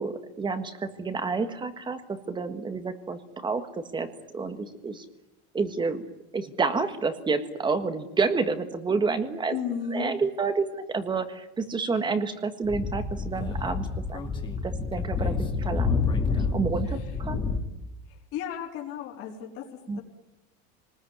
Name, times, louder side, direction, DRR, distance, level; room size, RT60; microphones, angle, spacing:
voice 1, 0.0-3.6 3.9-4.1 4.3-5.0 5.5-6.0 6.3-9.6 9.9-14.2 14.6-16.0 16.3-17.4 19.9-20.0, right 4 dB, 15° right, 9 dB, 1.6 m, -29 dB
voice 2, 9.5-10.1 18.3-19.6, left 7 dB, 50° left, -1 dB, 4.1 m, -33 dB
Speech / Wind, 12.6-17.6, left 4 dB, 15° left, 2.3 m, -28 dB
27.5 x 20.0 x 9.6 m, 0.98 s
cardioid pair, 165°, 30 cm